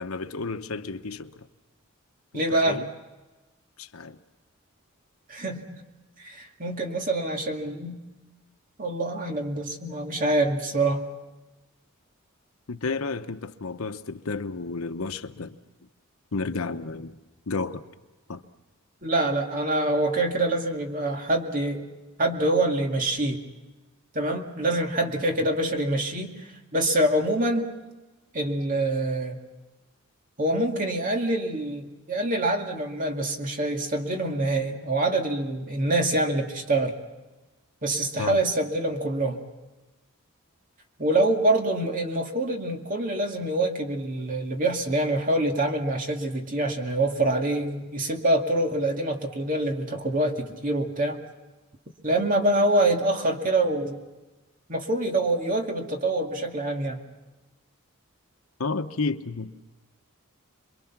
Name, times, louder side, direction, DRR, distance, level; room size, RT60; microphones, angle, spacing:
voice 1, 0.0-1.5 2.3-2.9 3.8-4.2 12.7-15.6 16.3-17.2 17.5-17.8 18.3-18.4 38.2-38.4 58.6-59.6, left 3 dB, 85° left, 1.0 m, -32 dB
voice 2, 2.3-2.8 5.3-5.8 6.2-8.0 8.8-11.0 19.0-21.8 22.2-23.4 24.1-27.7 28.3-29.4 30.4-36.9 37.8-39.4 41.0-51.2 52.0-54.0 54.7-57.0, right 1 dB, 40° right, 2.3 m, -25 dB
27.5 x 23.0 x 6.0 m
head